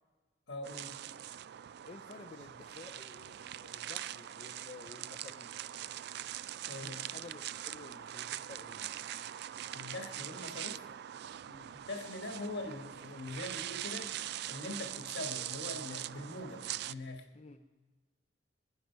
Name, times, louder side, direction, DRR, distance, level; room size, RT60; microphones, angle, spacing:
voice 1, 0.5-1.0 6.7-7.0 9.7-10.8 11.9-14.2 14.5-17.3, left 2 dB, 70° left, 5 dB, 1.5 m, -42 dB
sound 1, 0.6-16.9, right 12 dB, 65° right, 0.3 m, -42 dB
voice 2, 1.8-5.6 6.7-9.4 11.4-11.7 17.3-17.6, left 3 dB, 35° left, 4 dB, 0.5 m, -53 dB
21.0 x 10.5 x 4.5 m, 1.3 s
head